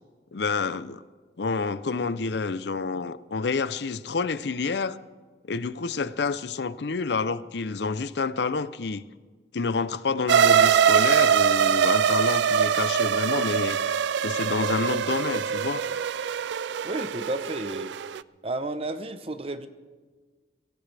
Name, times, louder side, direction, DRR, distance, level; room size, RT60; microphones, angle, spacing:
voice 1, 0.3-1.0 1.4-5.0 5.5-9.0 9.5-13.8 14.2-15.8, left 4 dB, 70° left, 0.5 m, -28 dB
sound 1, 10.3-18.2, right 8 dB, 75° right, 0.4 m, -23 dB
voice 2, 16.8-17.9 18.4-19.7, right 2 dB, 30° right, 0.8 m, -32 dB
23.5 x 17.5 x 3.4 m
head